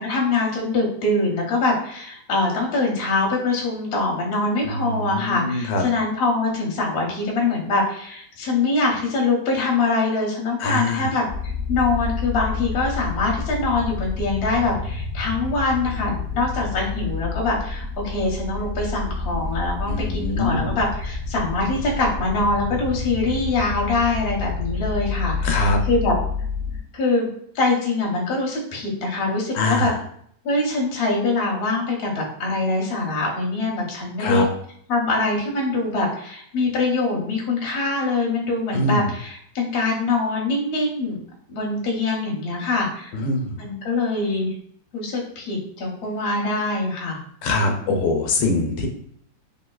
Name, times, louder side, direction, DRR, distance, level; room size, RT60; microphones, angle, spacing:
voice 1, 0.0-11.2 11.7-26.2 26.9-27.3 27.5-29.9 30.4-34.5 34.9-41.2 41.5-43.1 43.6-44.5 44.9-47.2, left 3 dB, 50° left, -2 dB, 0.7 m, -23 dB
voice 2, 4.6-5.8 10.6-11.1 19.9-20.7 25.4-25.8 29.5-30.0 34.2-34.5 38.7-39.1 43.1-43.6 47.4-48.9, left 2 dB, 80° left, 2 dB, 1.3 m, -23 dB
sound 1, 11.3-26.8, left 4 dB, 55° right, 1.4 m, -29 dB
3.4 x 2.7 x 2.3 m, 0.65 s
omnidirectional pair, 2.0 m